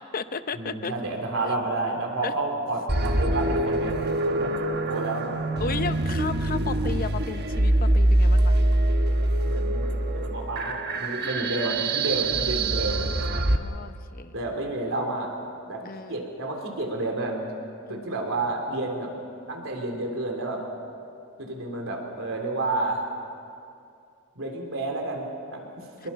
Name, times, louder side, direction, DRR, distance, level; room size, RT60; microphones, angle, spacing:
voice 1, 0.0-0.9 2.2-2.3 4.3-5.0 5.6-8.6 13.3-14.3 15.8-16.3 17.9-18.3 26.0-26.1, left 4 dB, 45° left, 11 dB, 0.8 m, -35 dB
voice 2, 0.5-4.6 4.9-5.3 5.6-5.9 9.4-13.1 14.3-15.3 15.7-17.4 17.9-19.1 19.5-20.6 21.4-23.0 24.4-26.1, right 2 dB, 70° right, 1 dB, 3.7 m, -30 dB
sound 1, 2.9-13.6, right 1 dB, 50° right, 1.2 m, -24 dB
25.0 x 22.0 x 5.9 m, 2.5 s
head